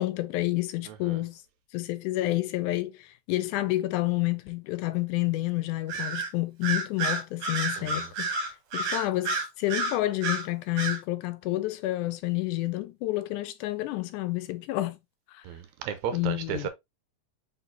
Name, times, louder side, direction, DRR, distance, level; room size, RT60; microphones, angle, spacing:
voice 1, 0.0-1.4 1.7-15.0 15.3-15.4 16.1-16.7, left 17 dB, 85° left, 2.1 m, -29 dB
Bird vocalization bird call bird song, 5.9-6.3 6.6-10.5 10.8-11.0, right 3 dB, 60° right, 2.1 m, -30 dB
voice 2, 15.5-16.7, right 8 dB, 80° right, 1.9 m, -33 dB
4.7 x 4.0 x 2.6 m
omnidirectional pair, 3.4 m